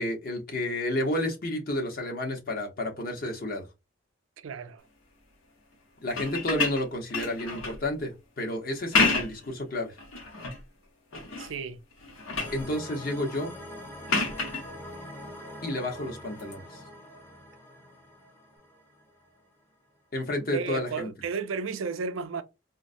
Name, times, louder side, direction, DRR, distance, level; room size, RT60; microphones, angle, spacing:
voice 1, 0.0-3.6 6.0-8.1 8.4-9.9 12.5-13.5 15.6-16.8 20.1-21.1, left 1 dB, 45° left, 0.8 m, -31 dB
voice 2, 4.4-4.8 11.4-11.8 20.4-22.4, right 5 dB, 75° right, 0.4 m, -33 dB
sound 1, 6.0-7.8 8.7-9.5 10.0-10.6 11.1-11.6 11.9-12.6 14.1-14.6 16.4-16.5, left 4 dB, 85° left, 1.0 m, -29 dB
sound 2, 12.4-19.4, left 1 dB, 10° left, 0.6 m, -44 dB
3.8 x 2.1 x 2.5 m
head